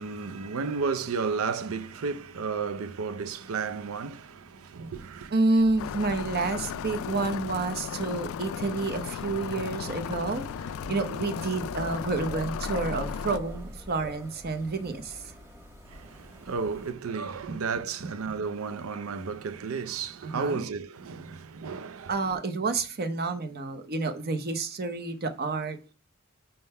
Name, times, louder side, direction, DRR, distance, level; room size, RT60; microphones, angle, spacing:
voice 1, 0.0-5.3 15.9-22.2, right 5 dB, 85° right, 0.5 m, -33 dB
voice 2, 5.3-10.5 10.9-15.3 17.5-17.6 18.0-18.1 20.2-20.6 22.1-25.9, right 3 dB, 50° right, 0.7 m, -29 dB
sound 1, 5.6-16.9, equal, 10° right, 1.3 m, -44 dB
sound 2, 5.8-13.4, left 8 dB, 75° left, 0.3 m, -36 dB
5.4 x 3.8 x 5.4 m
head